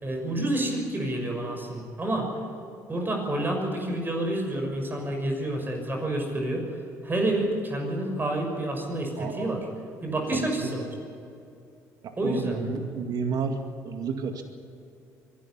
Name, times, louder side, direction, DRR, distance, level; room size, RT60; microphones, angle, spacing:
voice 1, 0.0-2.3 2.9-6.7 7.0-9.6 10.0-10.9 12.2-12.7, right 1 dB, 25° right, 2 dB, 6.2 m, -29 dB
voice 2, 9.2-9.5 10.3-10.5 12.0-13.6 13.8-14.4, right 5 dB, 60° right, 5 dB, 2.2 m, -31 dB
23.5 x 12.0 x 9.8 m, 2.6 s
supercardioid pair, 65°, 8 cm